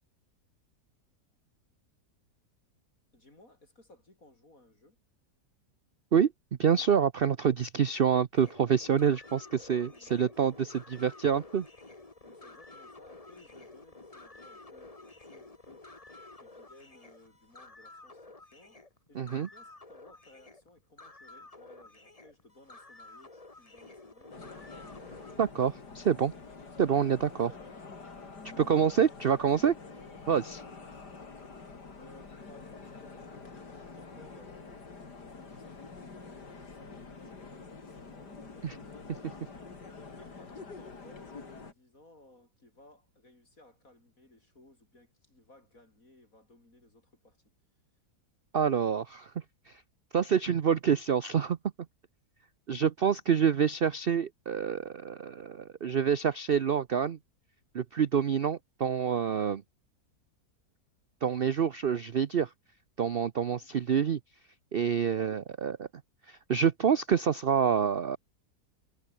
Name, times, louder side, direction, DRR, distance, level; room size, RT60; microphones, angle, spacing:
voice 1, 3.1-5.0 9.9-10.1 12.2-16.0 16.4-18.8 19.1-24.7 27.1-27.8 28.3-29.5 29.8-30.2 30.4-31.6 32.0-35.0 35.3-39.1 40.1-47.4 61.7-61.8 63.5-63.7, left 2 dB, 55° left, 7.7 m, -59 dB
voice 2, 6.6-11.7 19.1-19.5 25.4-26.3 26.8-27.5 28.6-29.7 30.3-30.6 38.6-38.7 48.5-49.3 49.7-49.8 50.1-51.6 52.7-57.2 57.7-59.6 61.2-62.5 63.0-64.2 64.7-65.9 66.3-68.2, right 7 dB, 50° right, 0.7 m, -27 dB
sound 1, 8.3-25.4, left 2 dB, 20° left, 2.0 m, -51 dB
sound 2, 24.3-41.7, left 4 dB, 75° left, 3.9 m, -47 dB
omnidirectional pair, 1.8 m